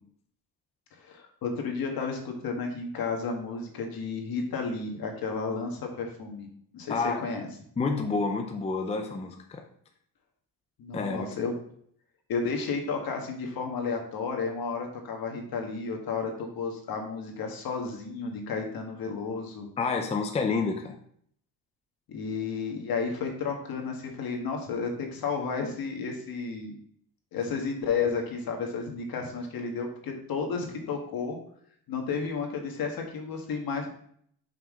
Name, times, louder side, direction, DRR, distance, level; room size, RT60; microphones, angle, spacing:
voice 1, 0.9-6.5 6.7-7.5 10.8-11.6 12.3-19.7 22.1-26.8 27.3-31.4 31.9-33.9, left 5 dB, 60° left, 2 dB, 1.5 m, -32 dB
voice 2, 6.9-7.2 7.8-9.6 10.9-11.4 19.8-21.0, left 4 dB, 15° left, 4 dB, 0.5 m, -29 dB
5.8 x 5.5 x 3.6 m, 0.64 s
cardioid pair, 130°, 39 cm